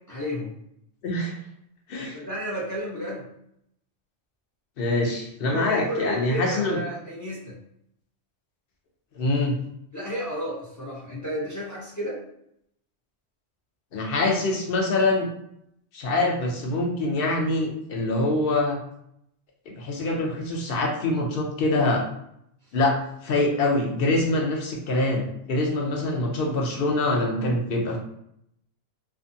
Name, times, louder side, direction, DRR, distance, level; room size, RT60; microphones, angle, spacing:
voice 1, 0.1-0.6 2.1-3.2 5.4-7.6 9.9-12.2, equal, 25° left, -6 dB, 0.4 m, -32 dB
voice 2, 1.0-1.3 1.9-2.2 4.8-6.8 9.1-9.6 13.9-15.3 15.9-18.8 19.7-22.0 22.7-22.9 23.2-28.0, left 2 dB, 55° left, 0 dB, 0.7 m, -24 dB
2.5 x 2.4 x 2.6 m, 0.75 s
omnidirectional pair, 1.3 m